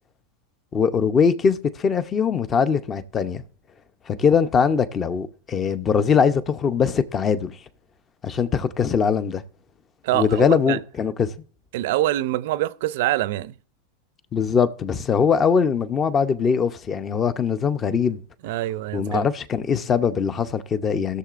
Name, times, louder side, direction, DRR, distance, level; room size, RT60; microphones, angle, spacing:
voice 1, 0.7-3.4 4.1-7.6 8.2-9.4 10.1-11.3 14.3-18.2 18.9-21.2, left 6 dB, 25° left, 0.7 m, -21 dB
voice 2, 10.0-10.8 11.7-13.5 18.4-19.3, right 15 dB, 65° right, 0.5 m, -25 dB
17.5 x 6.7 x 2.5 m
hypercardioid pair, 115°, 0 cm